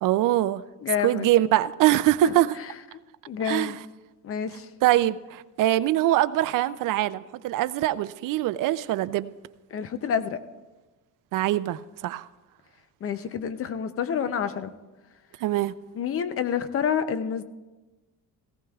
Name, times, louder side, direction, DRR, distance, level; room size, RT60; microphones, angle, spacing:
voice 1, 0.0-0.6 1.0-2.5 3.4-3.8 4.8-9.3 11.3-12.2 15.4-15.7, right 14 dB, 55° right, 15 dB, 0.5 m, -23 dB
voice 2, 0.8-1.3 2.2-2.7 3.3-3.8 4.2-4.7 9.7-10.4 13.0-14.7 15.9-17.4, left 7 dB, 35° left, 11 dB, 0.6 m, -28 dB
18.0 x 16.0 x 2.4 m, 1.2 s
cardioid pair, 155°, 38 cm